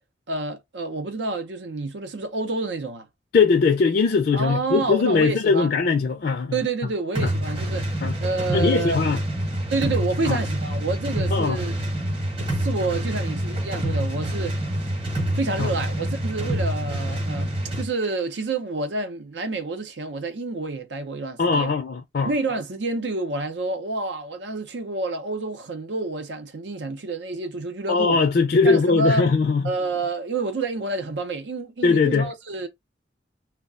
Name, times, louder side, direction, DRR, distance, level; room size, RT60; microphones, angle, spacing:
voice 1, 0.3-3.1 4.3-5.7 6.5-7.9 8.2-9.0 9.7-11.7 12.4-14.9 15.3-21.7 22.2-28.2 28.6-29.3 29.6-32.7, right 3 dB, 85° right, 0.6 m, -28 dB
voice 2, 3.3-6.6 7.2-7.3 8.0-8.2 8.5-9.2 10.3-10.4 11.3-11.6 15.6-15.7 21.4-22.3 27.9-29.7 31.8-32.3, left 4 dB, 55° left, 0.4 m, -20 dB
sound 1, 7.1-17.9, right 1 dB, 30° right, 0.9 m, -27 dB
2.3 x 2.1 x 3.6 m
head